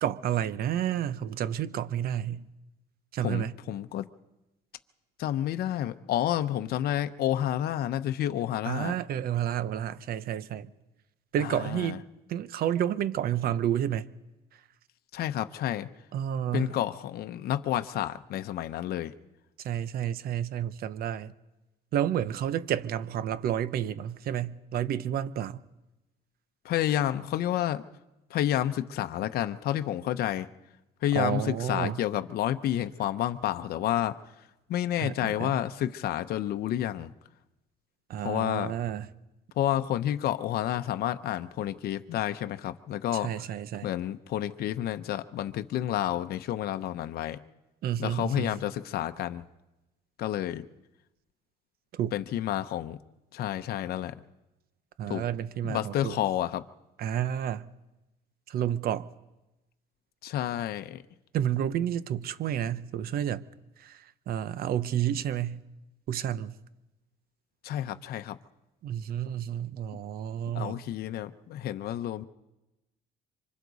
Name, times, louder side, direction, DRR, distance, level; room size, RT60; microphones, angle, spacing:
voice 1, 0.0-2.5 3.1-3.6 8.6-10.7 11.3-12.0 12.3-14.1 16.1-16.8 19.6-21.3 21.9-25.6 31.1-32.0 35.0-35.6 38.1-39.1 43.1-43.9 47.8-48.6 51.9-52.2 55.0-56.2 57.0-57.7 58.5-59.1 61.3-63.4 63.8-65.6 66.1-66.6 68.8-70.8, right 10 dB, 65° right, 0.8 m, -30 dB
voice 2, 3.2-4.1 5.2-9.0 11.4-12.0 15.1-15.9 16.5-19.1 26.6-27.8 28.3-30.5 31.0-34.2 34.7-37.1 38.2-38.7 39.6-43.3 43.8-47.4 48.0-49.4 50.2-50.7 52.1-53.0 53.3-54.1 55.1-55.2 55.6-56.6 60.2-61.0 67.6-68.4 70.5-72.2, left 12 dB, 65° left, 0.8 m, -30 dB
26.0 x 25.0 x 4.1 m
cardioid pair, 110°, 17 cm